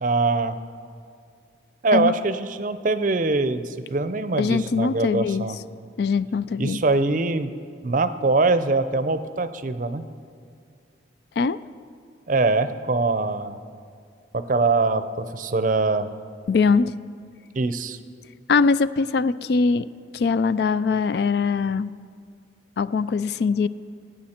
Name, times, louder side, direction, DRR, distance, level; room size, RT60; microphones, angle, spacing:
voice 1, 0.0-0.6 1.8-5.6 6.6-7.5 7.8-10.0 12.3-13.6 14.3-16.1 17.6-18.0, right 3 dB, 45° right, 11 dB, 0.6 m, -23 dB
voice 2, 4.4-5.4 6.0-6.8 11.4-11.6 16.5-16.9 18.5-19.9 20.1-21.9 22.8-23.7, left 4 dB, 55° left, 16 dB, 0.3 m, -22 dB
22.5 x 9.2 x 4.4 m, 2.3 s
head